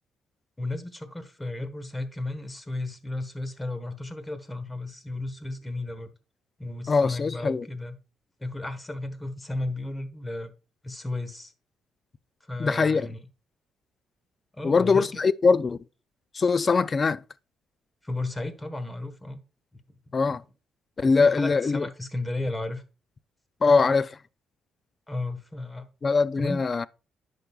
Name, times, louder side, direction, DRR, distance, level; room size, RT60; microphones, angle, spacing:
voice 1, 0.6-6.1 6.6-8.0 8.4-10.5 10.8-11.5 12.4-13.2 14.5-15.1 18.0-19.4 20.1-20.4 21.0-22.8 25.1-25.9 26.4-26.7, left 2 dB, 15° left, 1.2 m, -34 dB
voice 2, 6.9-7.7 12.6-13.1 14.6-15.8 16.3-17.2 20.1-20.4 21.0-21.9 23.6-24.2 26.0-26.9, left 4 dB, 35° left, 0.4 m, -22 dB
10.5 x 5.2 x 2.3 m
cardioid pair, 90°, 0 cm